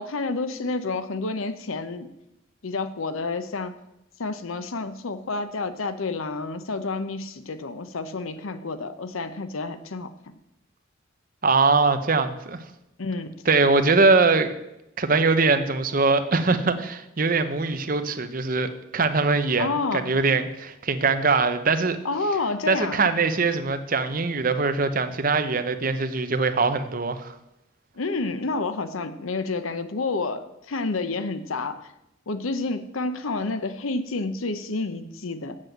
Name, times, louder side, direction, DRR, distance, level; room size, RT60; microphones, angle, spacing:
voice 1, 0.0-2.1 2.6-3.7 4.2-10.1 13.0-13.3 19.6-20.1 22.0-23.0 27.9-31.9 32.3-35.6, left 3 dB, 90° left, 11 dB, 0.8 m, -29 dB
voice 2, 11.4-12.6 13.5-14.5 15.0-22.0 22.7-27.3, right 4 dB, 45° right, 9 dB, 0.8 m, -22 dB
7.7 x 7.5 x 7.9 m, 0.87 s
head